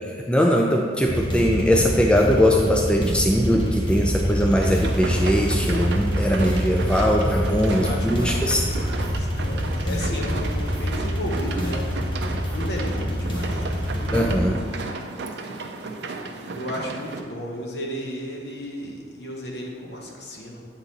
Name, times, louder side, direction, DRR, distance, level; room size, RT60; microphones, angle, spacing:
voice 1, 0.3-8.6 14.1-14.6, equal, 5° left, 0 dB, 0.3 m, -21 dB
sound 1, 1.0-14.4, equal, 25° left, 1.0 m, -26 dB
sound 2, 4.6-17.2, right 3 dB, 75° right, 0.5 m, -34 dB
voice 2, 7.7-14.8 16.6-20.6, left 1 dB, 65° left, -1 dB, 1.1 m, -34 dB
8.1 x 4.1 x 4.0 m, 2.2 s
head